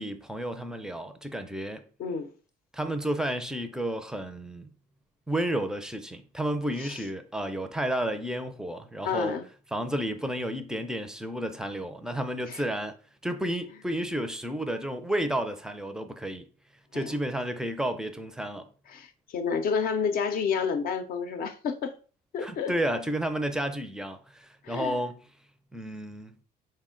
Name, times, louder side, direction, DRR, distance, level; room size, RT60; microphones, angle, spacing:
voice 1, 0.0-1.8 2.7-4.7 5.3-9.4 9.7-13.0 13.2-16.5 16.9-18.7 22.4-25.2 25.7-26.4, right 1 dB, 5° right, 0.4 m, -31 dB
voice 2, 9.0-9.5 12.5-12.6 16.9-17.1 18.9-22.0 22.3-22.7 24.6-25.0, left 6 dB, 60° left, 0.6 m, -30 dB
4.2 x 2.1 x 3.7 m
cardioid pair, 110°, 17 cm